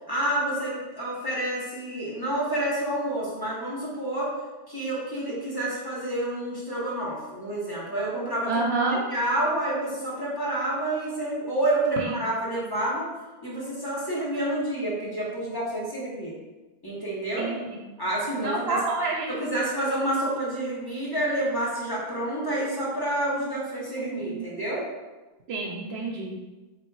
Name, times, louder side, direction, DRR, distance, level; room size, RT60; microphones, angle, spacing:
voice 1, 0.1-4.3 4.7-8.6 8.9-13.1 13.4-16.3 16.8-17.5 18.0-18.8 19.3-24.9, right 1 dB, 25° left, -7 dB, 1.0 m, -29 dB
voice 2, 8.5-9.0 12.0-12.1 17.4-17.8 18.4-19.3 24.0-24.4 25.5-26.4, right 3 dB, 85° right, -2 dB, 0.8 m, -28 dB
3.6 x 2.5 x 4.5 m, 1.1 s
omnidirectional pair, 1.0 m